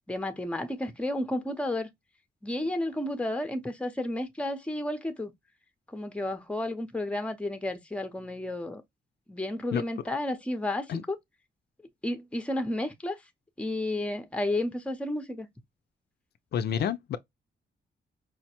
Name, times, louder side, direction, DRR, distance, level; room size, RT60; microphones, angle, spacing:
voice 1, 0.1-1.9 2.4-5.3 5.9-8.8 9.3-11.2 12.0-13.2 13.6-15.5, left 1 dB, 5° left, 0.6 m, -32 dB
voice 2, 16.5-17.2, left 8 dB, 65° left, 0.4 m, -28 dB
4.7 x 2.1 x 2.9 m
cardioid pair, 115°, 18 cm